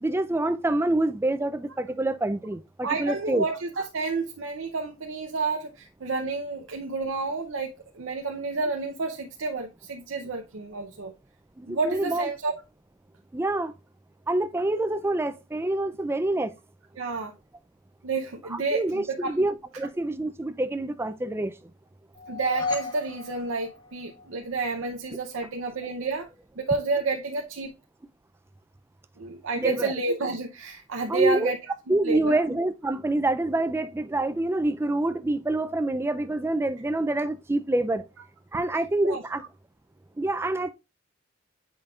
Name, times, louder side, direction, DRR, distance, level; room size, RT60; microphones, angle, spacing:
voice 1, 0.0-3.4 11.6-12.3 13.3-13.7 14.3-16.5 18.5-21.5 29.6-29.9 31.1-31.5 31.9-38.0 38.5-39.4 40.2-40.7, right 2 dB, 10° right, 0.3 m, -26 dB
voice 2, 2.8-11.1 11.7-12.5 17.0-17.3 18.0-19.3 22.3-26.3 26.6-27.7 29.2-31.6 31.9-32.4 39.0-39.2, right 3 dB, 80° right, 0.7 m, -30 dB
sound 1, 22.1-24.4, left 3 dB, 20° left, 1.1 m, -34 dB
7.7 x 5.1 x 2.4 m
head